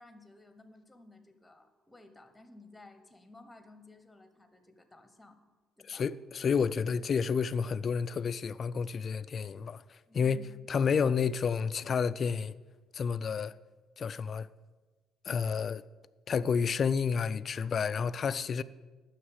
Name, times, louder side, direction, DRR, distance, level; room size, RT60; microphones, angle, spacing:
voice 1, 0.0-5.4 5.8-6.0 10.1-11.2, left 2 dB, 5° left, 0.9 m, -55 dB
voice 2, 5.9-12.5 12.9-13.5 14.0-14.5 15.3-15.8 16.3-18.6, left 6 dB, 35° left, 0.3 m, -30 dB
9.5 x 6.5 x 8.0 m
cardioid pair, 150°, 0 cm